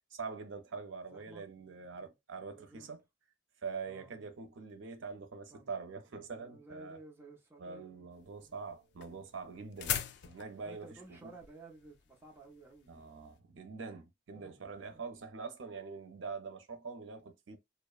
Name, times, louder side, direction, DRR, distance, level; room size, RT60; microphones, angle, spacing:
voice 1, 0.1-3.0 3.6-7.0 7.6-11.3 12.9-17.6, right 5 dB, 85° right, 0.5 m, -44 dB
voice 2, 1.1-2.1 2.4-2.9 3.8-4.2 5.5-5.7 6.1-8.1 8.4-8.6 9.0-9.3 10.6-13.1 14.4-14.6 14.9-15.0, right 2 dB, 10° right, 0.5 m, -55 dB
sound 1, 8.1-13.3, left 9 dB, 60° left, 0.3 m, -41 dB
2.7 x 2.1 x 2.3 m
head